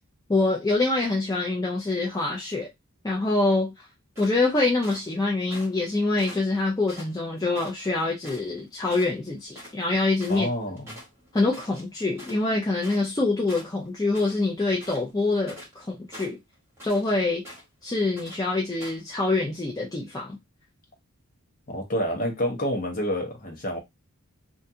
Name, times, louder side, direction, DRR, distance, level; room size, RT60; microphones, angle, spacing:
voice 1, 0.3-2.7 3.0-3.7 4.2-10.5 11.3-16.4 16.8-17.4 17.8-20.4, left 2 dB, 15° left, 0.4 m, -25 dB
sound 1, 4.2-5.1 5.5-5.9 6.2-7.9 8.2-8.6 8.9-9.1 9.4-13.2 13.5-14.4 14.7-15.8 16.1-17.1 17.4-17.8 18.2-18.4 18.8-19.1, equal, 10° right, 1.3 m, -45 dB
voice 2, 10.3-10.9 21.7-23.8, equal, 40° left, 0.8 m, -28 dB
2.5 x 2.3 x 2.6 m
head